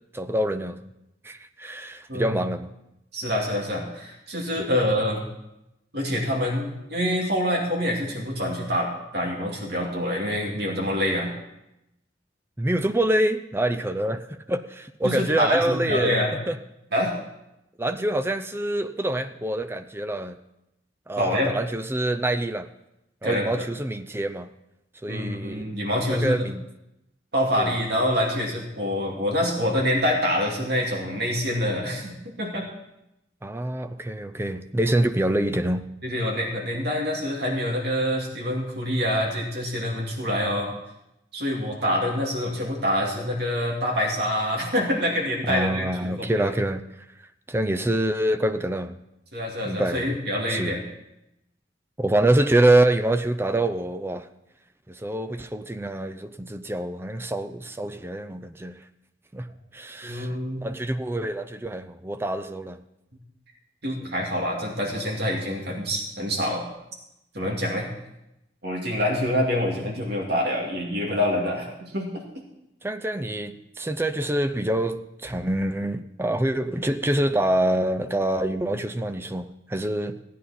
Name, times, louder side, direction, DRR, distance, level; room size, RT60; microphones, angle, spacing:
voice 1, 0.1-0.9 1.2-2.7 4.6-4.7 12.6-16.2 16.5-16.6 17.8-20.4 21.1-22.7 23.2-24.5 25.0-25.7 26.1-26.7 27.6-27.8 33.4-35.9 45.5-46.8 47.5-49.0 49.6-50.1 50.5-50.8 52.0-54.3 54.9-58.8 59.3-59.5 59.7-60.3 60.6-62.8 64.0-64.1 72.8-80.2, right 1 dB, 15° right, 8 dB, 0.5 m, -26 dB
voice 2, 2.1-2.4 3.1-5.2 5.9-11.3 15.0-16.3 16.9-17.1 21.2-21.5 23.2-23.7 25.1-26.4 27.3-32.7 36.0-40.7 41.3-46.5 49.3-50.8 60.0-60.7 63.8-66.6 67.3-67.9 68.6-72.1, equal, 60° right, -2 dB, 2.5 m, -26 dB
16.0 x 9.2 x 4.2 m, 0.87 s
head